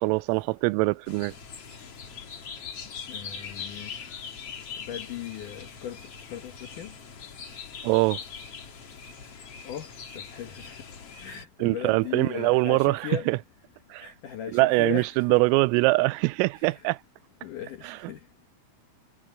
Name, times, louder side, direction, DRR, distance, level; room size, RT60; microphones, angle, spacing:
voice 1, 0.0-1.3 7.8-8.2 11.6-13.4 13.9-14.1 14.5-17.0 17.8-18.0, right 23 dB, 85° right, 3.2 m, -23 dB
sound 1, 1.1-11.4, left 6 dB, 45° left, 2.1 m, -41 dB
voice 2, 3.1-4.1 4.9-6.0 6.3-6.9 9.6-9.9 10.1-10.8 11.2-13.3 14.0-15.2 16.5-16.9 17.4-18.2, left 9 dB, 90° left, 1.8 m, -38 dB
omnidirectional pair, 5.8 m